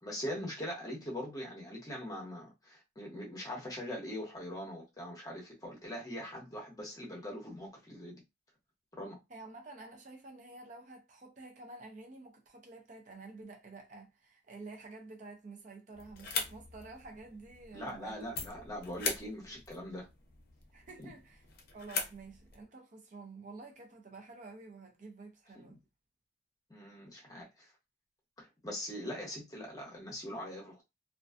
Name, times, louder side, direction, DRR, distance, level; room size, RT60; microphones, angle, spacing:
voice 1, 0.0-8.2 8.9-9.2 17.7-20.1 21.0-21.1 25.6-25.7 26.7-27.7 28.4-30.8, equal, 20° left, 0.9 m, -42 dB
voice 2, 9.3-18.2 20.7-21.4 21.7-25.8, right 3 dB, 40° right, 0.5 m, -50 dB
sound 1, 15.9-22.6, left 4 dB, 55° left, 0.6 m, -41 dB
2.4 x 2.2 x 2.4 m
head